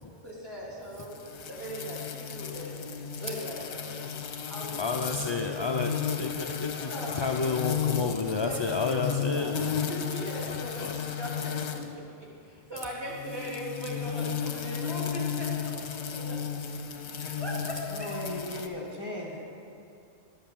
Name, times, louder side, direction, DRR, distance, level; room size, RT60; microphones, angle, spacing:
voice 1, 0.2-2.7 3.2-4.2 4.4-5.9 6.8-7.4 8.3-11.3 11.9-12.0 12.4-16.4 17.1-18.1, equal, 20° right, -7 dB, 3.0 m, -40 dB
sound 1, 1.1-11.9 13.0-18.7, left 7 dB, 75° left, 1.1 m, -34 dB
voice 2, 4.8-5.9 6.2-9.8 10.8-11.0, left 4 dB, 45° left, 2 dB, 0.3 m, -30 dB
voice 3, 17.9-19.4, left 1 dB, 25° left, -3 dB, 1.4 m, -37 dB
11.5 x 7.9 x 7.0 m, 2.5 s
omnidirectional pair, 1.1 m